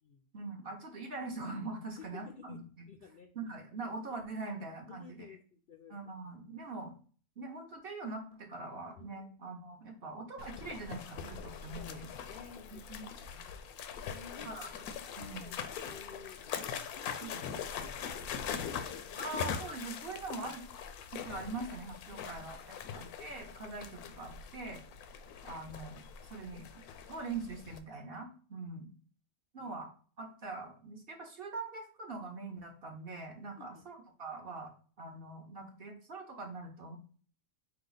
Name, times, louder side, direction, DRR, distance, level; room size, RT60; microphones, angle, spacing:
voice 1, 0.3-2.6 3.4-5.2 5.9-6.9 7.4-12.1 12.9-13.0 13.3-13.4 14.4-14.7 15.2-15.5 17.2-17.5 19.2-20.6 21.1-24.8 25.4-26.0 26.3-26.8 27.1-28.9 29.5-29.9 30.2-34.7 35.0-37.0, right 3 dB, 50° right, 2 dB, 0.8 m, -43 dB
voice 2, 2.0-3.3 4.9-5.9 9.0-9.1 11.7-12.0 12.3-12.8 13.3-14.6 15.2-15.5 15.8-17.2 17.7-19.3 22.1-23.1 29.6-29.7 33.6-33.8, left 6 dB, 70° left, 5 dB, 0.5 m, -54 dB
sound 1, 10.4-27.8, left 7 dB, 85° left, 1.1 m, -42 dB
4.8 x 2.3 x 3.8 m, 0.43 s
omnidirectional pair, 1.5 m